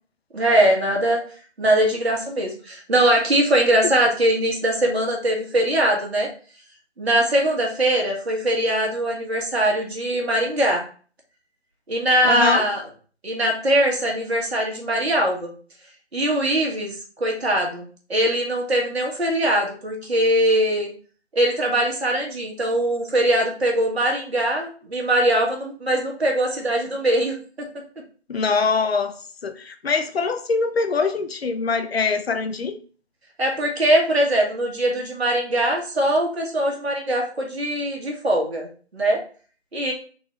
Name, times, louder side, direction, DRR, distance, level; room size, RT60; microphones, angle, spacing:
voice 1, 0.3-1.2 1.6-6.3 7.0-10.8 11.9-12.8 13.2-15.5 16.1-17.8 18.1-20.9 21.3-27.7 33.4-39.2 39.7-39.9, right 1 dB, 65° right, 0 dB, 1.4 m, -21 dB
voice 2, 12.2-12.7 28.3-29.2 29.4-32.8, left 4 dB, 65° left, 9 dB, 0.6 m, -23 dB
3.9 x 2.4 x 3.1 m, 0.40 s
figure-of-eight pair, 160°, 34 cm